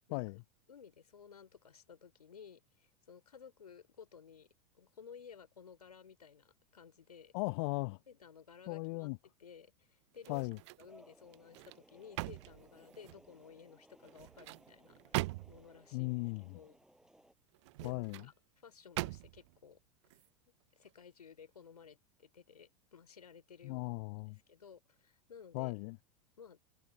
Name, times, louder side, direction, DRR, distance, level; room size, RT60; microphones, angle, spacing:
voice 1, 0.1-0.4 7.3-8.0 8.7-9.2 10.3-10.6 15.9-16.6 17.8-18.2 23.6-24.4 25.5-26.0, left 28 dB, 45° left, 0.9 m, -37 dB
voice 2, 0.7-4.5 4.7-7.3 8.1-9.1 9.4-10.5 10.8-16.2 16.5-16.8 17.8-18.3 18.6-19.8 20.1-20.3 20.7-23.9 24.3-25.8 26.4-26.6, left 7 dB, 70° left, 3.9 m, -56 dB
sound 1, 10.2-10.9 11.3-13.3 14.0-15.8 17.5-18.3 19.0-19.6 20.0-20.3, right 21 dB, 45° right, 0.4 m, -42 dB
sound 2, 10.9-17.3, right 1 dB, 5° right, 7.2 m, -64 dB
figure-of-eight pair, 85°, 20 cm